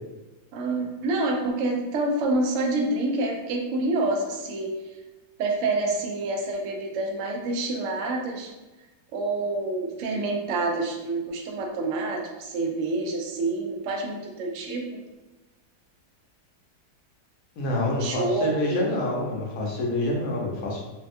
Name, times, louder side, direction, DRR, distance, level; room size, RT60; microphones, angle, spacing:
voice 1, 0.5-4.7 5.4-8.5 9.1-15.0 18.0-18.8, right 2 dB, 80° right, 1 dB, 0.6 m, -27 dB
voice 2, 17.6-20.8, left 1 dB, 65° left, -2 dB, 1.0 m, -27 dB
3.4 x 2.2 x 2.6 m, 1.1 s
omnidirectional pair, 1.9 m